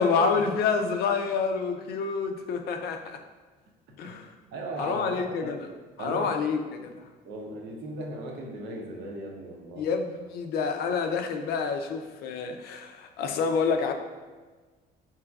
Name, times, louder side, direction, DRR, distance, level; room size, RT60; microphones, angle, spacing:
voice 1, 0.0-3.2 4.0-4.3 4.8-5.7 6.0-7.1 9.8-13.9, left 5 dB, 70° left, 6 dB, 0.4 m, -28 dB
voice 2, 4.5-5.5 6.0-6.3 7.3-9.9, right 2 dB, 75° right, 0 dB, 0.7 m, -37 dB
4.6 x 2.9 x 2.3 m, 1.4 s
cardioid pair, 110°, 17 cm